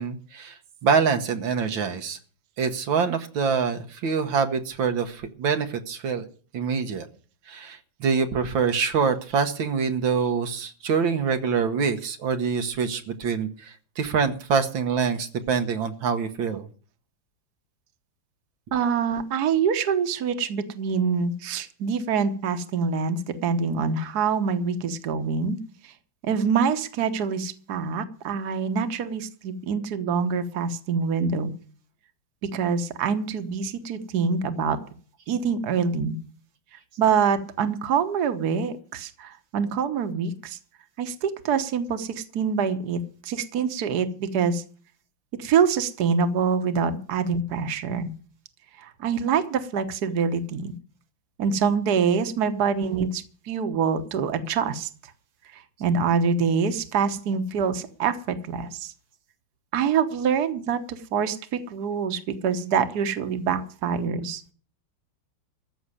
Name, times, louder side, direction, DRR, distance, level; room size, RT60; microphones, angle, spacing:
voice 1, 0.0-2.2 2.6-6.3 6.5-7.1 7.5-16.7, right 6 dB, 80° right, 7 dB, 1.9 m, -25 dB
voice 2, 18.7-25.6 25.8-25.9 26.2-31.5 32.4-34.8 35.3-36.2 37.0-40.6 41.0-44.6 45.3-48.1 48.8-50.7 51.4-54.9 55.5-58.9 59.7-64.4, right 6 dB, 60° right, 9 dB, 1.6 m, -25 dB
14.5 x 6.4 x 9.7 m, 0.43 s
omnidirectional pair, 2.1 m